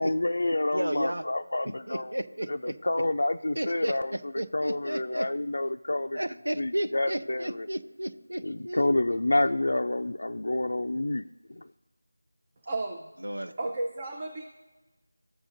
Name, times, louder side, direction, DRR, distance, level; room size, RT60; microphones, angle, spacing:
voice 1, 0.0-2.1 2.5-2.6 2.8-4.1 4.5-6.2 6.6-7.5 8.4-11.6, left 2 dB, 65° left, 6 dB, 0.3 m, -28 dB
voice 2, 0.7-1.2 1.9-2.8 3.5-5.3 6.1-9.1 13.2-13.5, right 1 dB, 85° right, 8 dB, 0.7 m, -33 dB
voice 3, 12.7-13.1 13.6-14.4, right 2 dB, 30° right, 3 dB, 0.6 m, -33 dB
14.0 x 4.9 x 2.6 m, 1.2 s
figure-of-eight pair, 170°, 0 cm